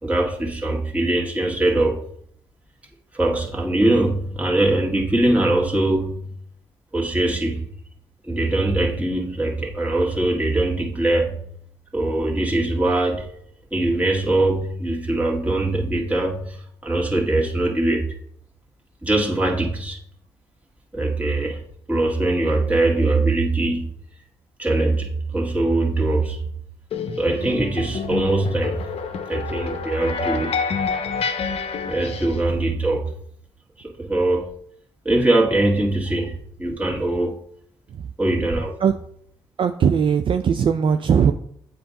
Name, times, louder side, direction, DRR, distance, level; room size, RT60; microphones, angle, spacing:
voice 1, 0.0-2.1 3.1-6.3 6.9-7.7 8.2-11.4 11.9-13.3 13.7-18.2 19.0-20.0 20.9-21.6 21.9-23.9 24.6-26.4 27.2-28.9 29.3-30.6 31.8-33.1 33.8-34.5 35.0-37.4 38.2-38.7, right 2 dB, 10° right, -2 dB, 1.7 m, -22 dB
sound 1, 26.9-32.4, left 5 dB, 60° left, 0.7 m, -28 dB
voice 2, 39.6-41.3, right 7 dB, 50° right, 8 dB, 0.4 m, -19 dB
7.6 x 2.6 x 5.2 m, 0.67 s
supercardioid pair, 50°, 11 cm